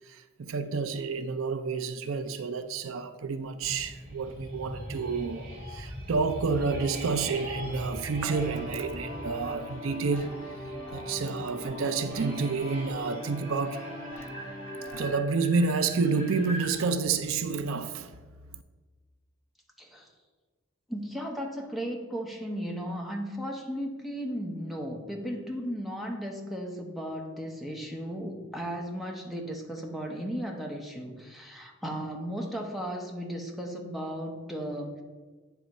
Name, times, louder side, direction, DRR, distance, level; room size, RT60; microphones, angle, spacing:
voice 1, 0.1-10.3 10.9-13.8 14.9-18.1 18.5-18.6, right 4 dB, 80° right, 0.5 m, -29 dB
sound 1, 3.6-16.9, equal, 45° right, 2.2 m, -42 dB
sound 2, 8.2-15.1, left 1 dB, 60° left, 2.0 m, -41 dB
voice 2, 19.8-20.1 20.9-35.0, equal, ahead, 0.8 m, -35 dB
9.0 x 3.5 x 5.2 m
head